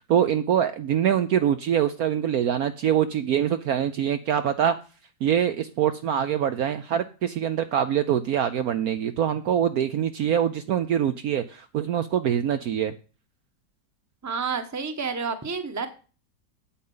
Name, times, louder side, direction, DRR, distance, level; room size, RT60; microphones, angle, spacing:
voice 1, 0.1-4.7 5.2-12.9, right 9 dB, 65° right, 10 dB, 1.0 m, -24 dB
voice 2, 14.2-15.9, right 5 dB, 15° right, 8 dB, 0.8 m, -29 dB
8.6 x 8.0 x 5.5 m, 0.36 s
omnidirectional pair, 2.0 m